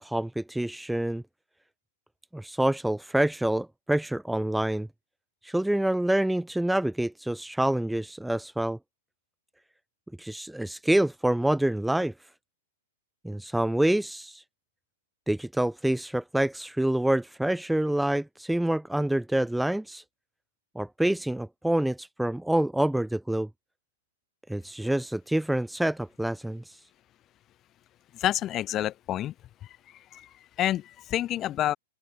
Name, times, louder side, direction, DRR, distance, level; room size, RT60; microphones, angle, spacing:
voice 1, 0.0-1.2 2.3-4.9 5.4-8.8 10.2-12.1 13.2-14.4 15.3-20.0 20.7-23.5 24.5-26.6, right 1 dB, 5° right, 0.9 m, -27 dB
voice 2, 28.1-29.3 30.1-30.3 30.6-31.8, left 13 dB, 30° left, 1.8 m, -28 dB
hypercardioid pair, 110°, 0 cm